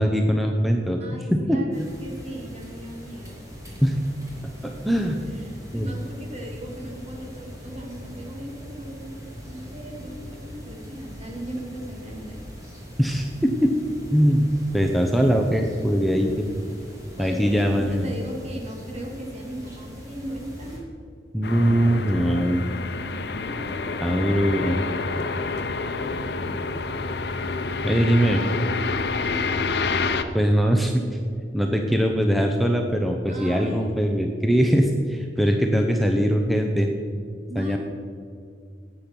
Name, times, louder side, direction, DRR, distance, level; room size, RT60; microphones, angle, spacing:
voice 1, 0.0-1.0 1.3-1.9 3.8-4.0 4.6-5.2 5.7-5.9 13.0-13.7 14.1-14.5 14.7-16.5 17.2-18.1 21.3-22.6 24.0-24.8 27.8-28.4 30.3-31.0 31.5-36.9 37.6-37.8, equal, ahead, 2 dB, 0.6 m, -21 dB
voice 2, 1.0-3.5 4.6-4.7 5.3-12.4 17.2-20.9 23.4-24.0 25.7-26.5 29.2-29.6 33.3-33.9 37.5-37.8, equal, 40° right, 1 dB, 2.1 m, -38 dB
sound 1, 1.7-20.8, equal, 20° right, 3.0 m, -41 dB
sound 2, 21.4-30.2, left 4 dB, 70° left, 0.7 m, -28 dB
12.0 x 8.6 x 6.0 m, 2.3 s
head